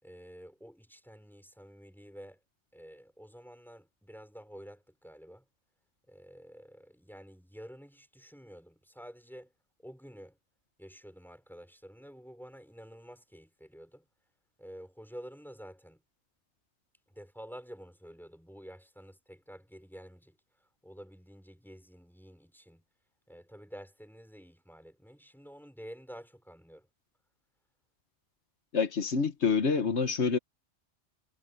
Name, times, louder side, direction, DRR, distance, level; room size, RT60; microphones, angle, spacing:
voice 1, 0.0-2.4 2.7-5.5 6.1-9.5 9.8-10.4 10.8-14.1 14.6-16.0 17.1-20.4 20.8-22.8 23.3-26.9, equal, ahead, 5.4 m, -50 dB
voice 2, 28.7-30.4, left 5 dB, 85° left, 1.6 m, -27 dB
omnidirectional pair, 1.1 m